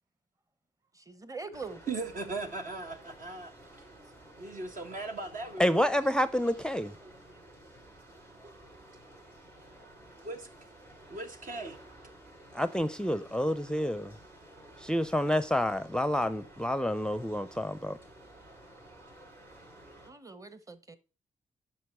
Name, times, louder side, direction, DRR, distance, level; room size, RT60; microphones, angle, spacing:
voice 1, 0.9-1.8 8.4-8.5 20.0-21.0, right 4 dB, 20° right, 1.1 m, -43 dB
sound 1, 1.5-20.1, right 1 dB, 75° right, 5.9 m, -53 dB
voice 2, 1.9-3.9 4.4-5.9 10.2-10.5 11.1-11.8, right 3 dB, 60° right, 1.6 m, -38 dB
voice 3, 5.6-6.9 12.5-14.1 14.8-18.0, left 1 dB, 5° left, 0.6 m, -28 dB
9.3 x 5.8 x 4.6 m
supercardioid pair, 50°, 15 cm